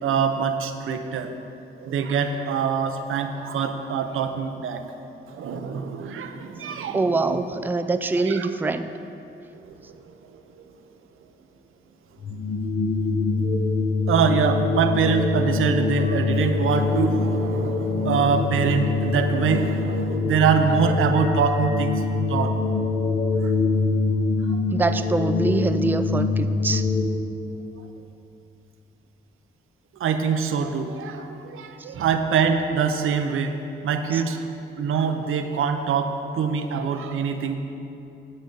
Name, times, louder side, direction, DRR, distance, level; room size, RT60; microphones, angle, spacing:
voice 1, 0.0-1.3 1.8-4.8 5.3-7.4 8.2-8.5 9.5-9.9 10.3-10.4 14.1-22.0 22.3-22.5 23.4-23.5 24.5-24.6 30.0-33.6 33.8-34.5 34.8-37.6, right 6 dB, 85° right, 7 dB, 0.6 m, -24 dB
voice 2, 6.9-8.9 24.7-26.9 34.1-34.2, right 3 dB, 10° right, 9 dB, 0.4 m, -24 dB
sound 1, 12.2-27.0, left 3 dB, 70° left, 1.3 m, -24 dB
8.6 x 8.5 x 3.9 m, 2.7 s
cardioid pair, 70°, 21 cm